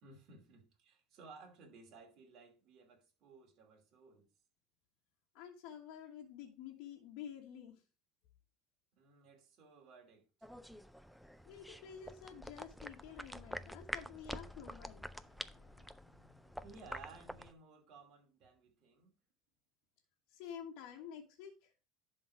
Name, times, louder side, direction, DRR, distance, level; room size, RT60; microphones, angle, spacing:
voice 1, 0.0-4.3 9.0-10.2 16.6-19.1, right 4 dB, 45° right, 2.7 m, -58 dB
voice 2, 5.3-7.8 11.4-16.6 20.3-21.7, left 8 dB, 65° left, 1.4 m, -51 dB
sound 1, 10.4-17.5, equal, ahead, 0.4 m, -48 dB
11.0 x 3.9 x 4.8 m
cardioid pair, 150°, 0 cm